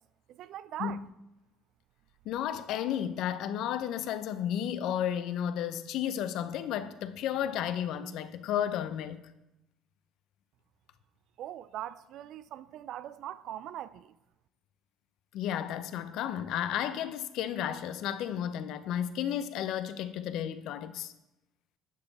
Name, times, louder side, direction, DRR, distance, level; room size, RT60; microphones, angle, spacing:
voice 1, 0.3-1.0 11.4-14.1, right 12 dB, 65° right, 0.4 m, -41 dB
voice 2, 2.3-9.2 15.3-21.1, left 10 dB, 70° left, 0.6 m, -33 dB
12.0 x 7.0 x 4.1 m
supercardioid pair, 70°, 0 cm